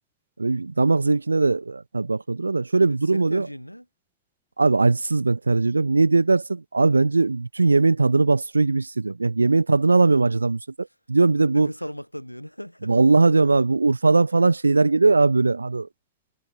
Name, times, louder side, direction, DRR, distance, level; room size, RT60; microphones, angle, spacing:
voice 1, 0.4-3.5 4.6-11.7 12.8-15.9, right 3 dB, 80° right, 1.4 m, -20 dB
voice 2, 2.8-3.8 11.5-12.9, equal, 90° left, 2.9 m, -36 dB
figure-of-eight pair, 90°, 0 cm